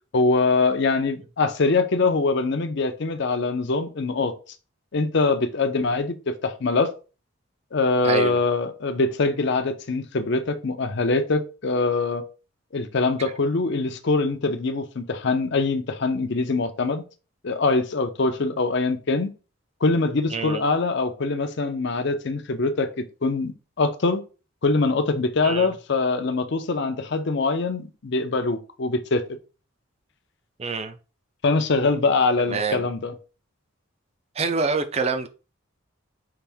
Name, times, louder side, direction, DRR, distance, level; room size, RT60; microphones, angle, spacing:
voice 1, 0.1-4.3 4.9-6.9 7.7-12.2 12.7-17.0 17.4-19.3 19.8-23.5 23.8-24.2 24.6-29.2 31.4-33.1, left 3 dB, 55° left, 0.5 m, -23 dB
voice 2, 8.0-8.4 20.3-20.6 25.4-25.7 30.6-31.0 32.5-32.9 34.4-35.3, right 4 dB, 30° right, 0.4 m, -26 dB
5.7 x 2.6 x 3.4 m
head